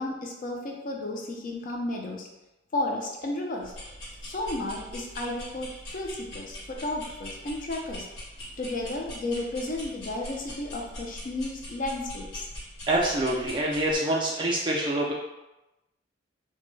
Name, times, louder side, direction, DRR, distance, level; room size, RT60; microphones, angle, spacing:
voice 1, 0.0-2.3 2.7-3.7 4.2-8.1 8.6-12.5, left 2 dB, 45° left, 0 dB, 0.4 m, -33 dB
sound 1, 3.6-14.0, equal, 85° left, 1.1 m, -42 dB
voice 2, 12.9-15.1, right 1 dB, 25° right, -4 dB, 0.3 m, -26 dB
2.2 x 2.1 x 3.1 m, 0.97 s
head